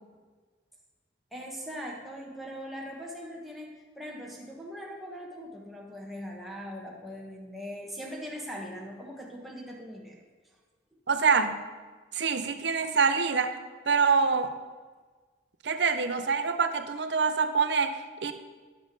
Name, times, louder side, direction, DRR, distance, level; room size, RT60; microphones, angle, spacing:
voice 1, 1.3-3.7 3.9-10.2, equal, ahead, -3 dB, 1.3 m, -40 dB
voice 2, 11.1-11.6 12.1-13.6 13.9-14.5 15.6-18.3, right 5 dB, 75° right, 9 dB, 0.6 m, -25 dB
10.0 x 7.4 x 3.8 m, 1.4 s
head